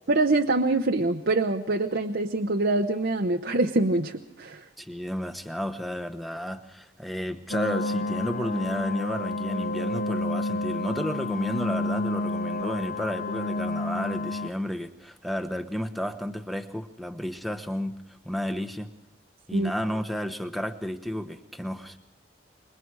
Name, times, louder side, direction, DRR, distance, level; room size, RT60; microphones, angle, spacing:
voice 1, 0.1-4.6 19.5-19.7, right 2 dB, 55° right, 3 dB, 0.9 m, -25 dB
voice 2, 4.8-18.9 19.5-22.0, equal, ahead, 8 dB, 1.1 m, -32 dB
sound 1, 7.5-14.5, left 2 dB, 45° left, 0.7 m, -30 dB
26.5 x 22.5 x 4.8 m, 0.82 s
head